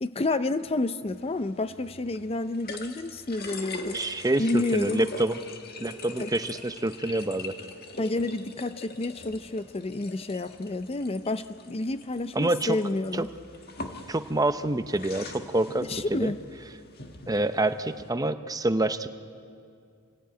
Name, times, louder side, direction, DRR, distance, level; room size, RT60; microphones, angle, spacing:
voice 1, 0.0-4.0 4.4-5.1 6.2-6.3 8.0-13.3 15.8-16.4, left 2 dB, 30° left, 0.5 m, -30 dB
sound 1, 1.1-18.1, left 3 dB, 50° left, 1.7 m, -43 dB
voice 2, 3.9-5.4 5.8-7.6 12.3-12.8 13.1-13.3 14.1-16.3 17.3-19.1, right 2 dB, 15° right, 0.7 m, -27 dB
27.0 x 17.0 x 9.2 m
head